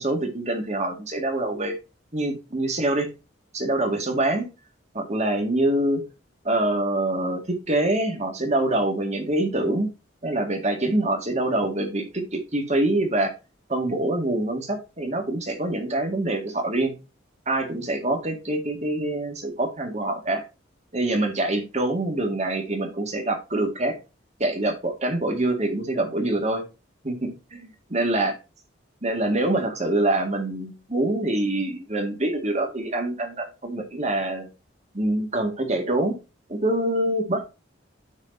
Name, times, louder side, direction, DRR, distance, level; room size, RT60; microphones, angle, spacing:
voice 1, 0.0-1.8 2.1-3.1 3.5-4.5 4.9-6.0 6.4-9.9 10.2-13.4 13.7-16.9 17.5-20.4 20.9-24.0 24.4-26.6 27.0-28.4 29.0-34.5 34.9-36.2 36.5-37.5, right 1 dB, 35° right, 3 dB, 2.0 m, -25 dB
13.0 x 4.7 x 2.7 m, 0.28 s
head